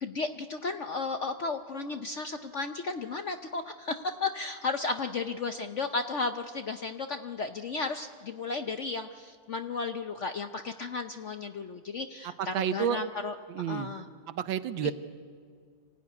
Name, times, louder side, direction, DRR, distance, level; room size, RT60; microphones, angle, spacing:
voice 1, 0.0-13.3 13.7-14.1, left 4 dB, 60° left, 7 dB, 0.8 m, -34 dB
voice 2, 12.4-13.0 13.5-13.9 14.3-14.9, right 9 dB, 80° right, 11 dB, 1.6 m, -30 dB
25.5 x 16.0 x 9.6 m, 2.1 s
omnidirectional pair, 2.1 m